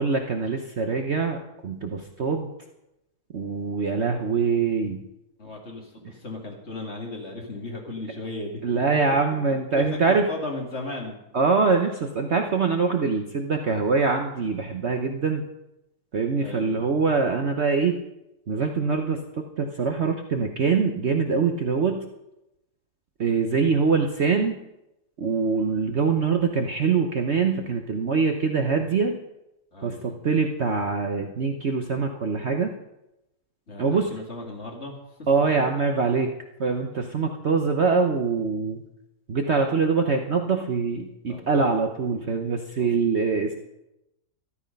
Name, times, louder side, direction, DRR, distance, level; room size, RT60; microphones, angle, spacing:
voice 1, 0.0-2.5 3.3-5.0 8.6-10.3 11.3-15.4 16.1-18.0 18.5-19.2 19.6-22.0 23.2-24.6 25.2-29.1 29.8-32.7 33.8-34.1 35.3-36.3 36.6-38.8 39.3-43.5, right 4 dB, 50° right, 4 dB, 1.0 m, -24 dB
voice 2, 5.4-8.6 9.7-11.2 16.4-16.8 29.7-30.2 33.7-35.3 41.3-41.7 42.8-43.2, left 2 dB, 40° left, 0 dB, 2.7 m, -36 dB
13.0 x 12.5 x 5.3 m, 0.91 s
omnidirectional pair, 1.8 m